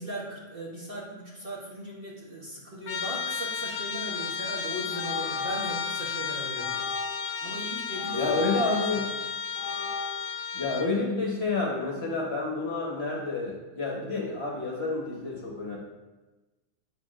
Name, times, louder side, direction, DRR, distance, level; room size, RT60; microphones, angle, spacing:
voice 1, 0.0-6.8 7.4-8.3, right 1 dB, 40° right, -4 dB, 1.0 m, -38 dB
Trumpet, 2.9-10.9, left 6 dB, 65° left, 0.7 m, -33 dB
sound 1, 4.1-4.3 4.9-6.0 6.6-7.3 7.9-9.2 9.6-10.1, left 5 dB, 80° left, 1.1 m, -35 dB
voice 2, 8.1-9.1 10.5-15.8, left 3 dB, 45° left, -3 dB, 1.3 m, -29 dB
8.0 x 6.1 x 2.5 m, 1.1 s
omnidirectional pair, 1.6 m